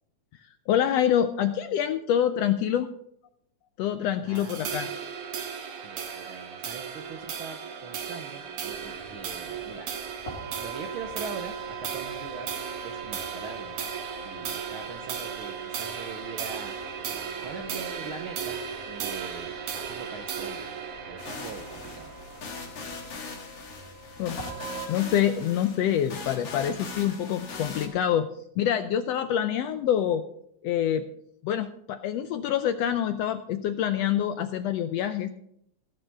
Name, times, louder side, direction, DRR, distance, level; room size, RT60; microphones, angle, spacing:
voice 1, 0.7-2.9 3.8-4.9 24.2-24.4 24.9-28.3 28.6-30.2 30.6-31.0 31.4-35.3, left 10 dB, 80° left, 10 dB, 1.5 m, -26 dB
voice 2, 4.2-5.0 5.8-9.9 10.6-12.5 12.8-13.9 14.2-16.7 17.4-20.6 21.1-22.1, right 5 dB, 70° right, 5 dB, 1.2 m, -42 dB
sound 1, 4.4-23.0, right 7 dB, 85° right, 2.9 m, -36 dB
sound 2, 8.7-24.9, right 4 dB, 40° left, 4.8 m, -44 dB
sound 3, 21.2-27.9, left 4 dB, 55° left, 3.0 m, -40 dB
16.5 x 6.8 x 5.7 m, 0.72 s
omnidirectional pair, 3.4 m